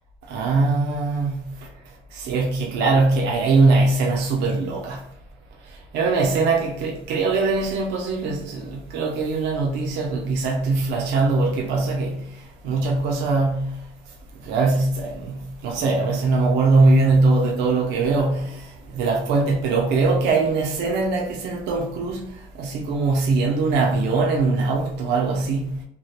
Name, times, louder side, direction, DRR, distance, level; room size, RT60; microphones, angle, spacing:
voice 1, 0.3-1.5 2.1-5.0 5.9-12.3 12.6-13.8 14.4-22.3 22.6-25.7, right 3 dB, 85° right, 0.5 m, -21 dB
2.9 x 2.3 x 3.1 m
cardioid pair, 110°, 17 cm